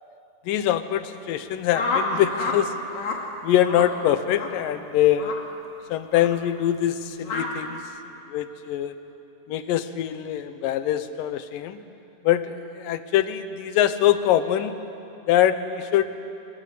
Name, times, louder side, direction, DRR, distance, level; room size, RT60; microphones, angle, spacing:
voice 1, 0.5-2.7 3.4-5.4 5.9-7.8 8.3-9.0 9.5-11.8 12.2-14.8 15.3-16.2, left 11 dB, 85° left, 11 dB, 2.6 m, -23 dB
sound 1, 1.7-2.6 2.9-3.2 3.6-3.9 4.3-4.5 5.2-5.4 6.1-6.3 7.2-7.5, left 3 dB, 60° left, 3.5 m, -28 dB
23.5 x 21.0 x 8.5 m, 2.7 s
omnidirectional pair, 3.9 m